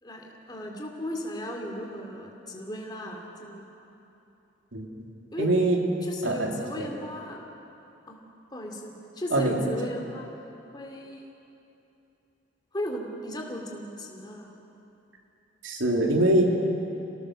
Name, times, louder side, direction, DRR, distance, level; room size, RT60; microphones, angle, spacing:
voice 1, 0.0-3.9 5.3-5.5 6.0-7.5 8.1-8.2 8.5-10.3 10.7-11.3 12.7-14.5, equal, 20° left, 1 dB, 2.6 m, -36 dB
voice 2, 4.7-5.1 5.4-5.9 6.2-6.5 6.8-6.9 9.3-9.6 15.6-16.6, right 1 dB, 80° right, 0 dB, 2.9 m, -23 dB
28.5 x 18.5 x 6.4 m, 2.9 s
head